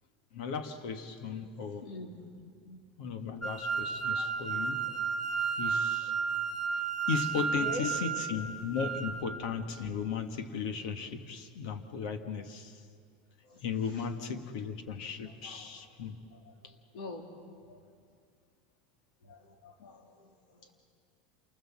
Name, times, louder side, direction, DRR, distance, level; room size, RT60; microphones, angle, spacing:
voice 1, 0.3-1.9 3.0-4.8 5.6-6.1 7.1-12.8 13.6-16.2 16.6-16.7, left 6 dB, 60° left, 7 dB, 1.7 m, -36 dB
voice 2, 1.8-2.2 2.6-2.8 4.1-4.5 4.9-5.0 7.3-7.9 13.4-13.6 15.2-15.7 16.3-16.5 16.9-17.2 17.7-17.8 19.2-20.7, left 2 dB, 80° left, 2 dB, 3.6 m, -44 dB
sound 1, 3.4-9.2, right 6 dB, 10° left, 1.3 m, -32 dB
28.0 x 20.5 x 7.5 m, 2.1 s
supercardioid pair, 180°, 5 cm